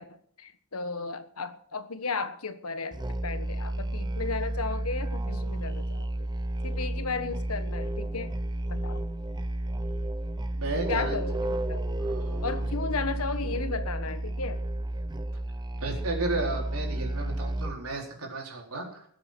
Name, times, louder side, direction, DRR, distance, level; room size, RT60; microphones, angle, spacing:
voice 1, 0.0-6.1 6.6-8.3 8.7-9.1 10.9-11.9 12.4-14.6, left 4 dB, 90° left, 11 dB, 1.4 m, -34 dB
Musical instrument, 2.9-17.9, right 1 dB, 20° right, 0.7 m, -32 dB
voice 2, 10.5-11.2 12.0-12.6 15.8-19.1, right 2 dB, 90° right, 1 dB, 4.2 m, -33 dB
19.5 x 7.9 x 6.2 m, 0.62 s
head